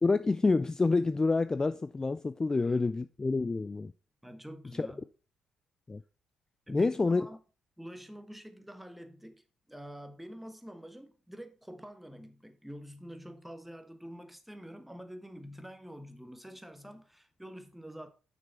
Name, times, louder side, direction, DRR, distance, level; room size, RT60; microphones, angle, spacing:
voice 1, 0.0-3.9 4.8-4.9 5.9-6.0 6.7-7.3, left 3 dB, 20° left, 0.4 m, -28 dB
voice 2, 4.2-5.1 6.7-7.4 7.8-18.1, equal, 5° right, 1.3 m, -47 dB
6.8 x 6.1 x 4.4 m
figure-of-eight pair, 45°, 3 cm